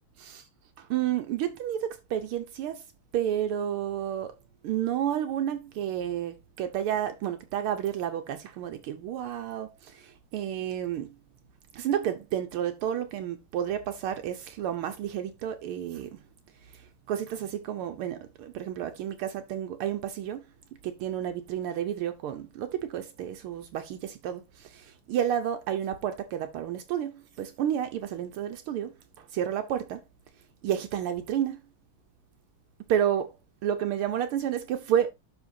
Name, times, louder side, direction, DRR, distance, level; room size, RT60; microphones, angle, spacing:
voice 1, 0.8-2.8 3.1-4.4 4.6-11.2 11.7-16.2 16.6-20.5 20.8-30.0 30.6-31.6 32.9-33.4 33.6-35.1, right 10 dB, 80° right, 1.6 m, -31 dB
12.0 x 4.4 x 2.6 m
omnidirectional pair, 2.4 m